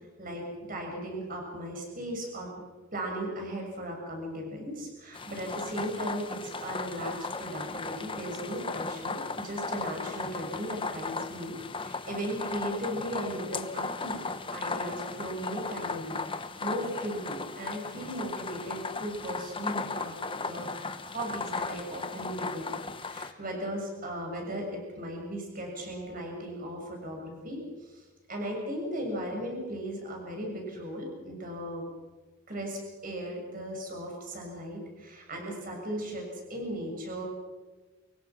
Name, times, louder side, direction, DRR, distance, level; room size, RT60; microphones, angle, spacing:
voice 1, 0.0-2.5 2.9-14.2 14.5-22.7 23.0-24.7 25.0-31.9 32.5-37.2, right 1 dB, 40° right, 1 dB, 6.9 m, -37 dB
sound 1, 5.1-23.3, left 4 dB, 25° left, 1.0 m, -36 dB
24.5 x 23.0 x 6.2 m, 1.3 s
head